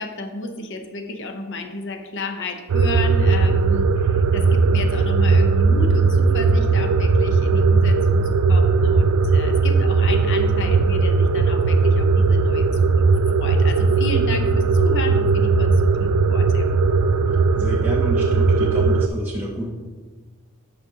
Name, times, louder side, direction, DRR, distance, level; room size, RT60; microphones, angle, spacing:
voice 1, 0.0-12.7 13.0-13.1 13.4-16.7, left 3 dB, 55° left, 5 dB, 0.7 m, -32 dB
sound 1, 2.7-19.1, right 4 dB, 80° right, 0.4 m, -18 dB
voice 2, 17.5-19.7, equal, 10° right, -4 dB, 0.5 m, -30 dB
9.6 x 5.5 x 2.7 m, 1.4 s
head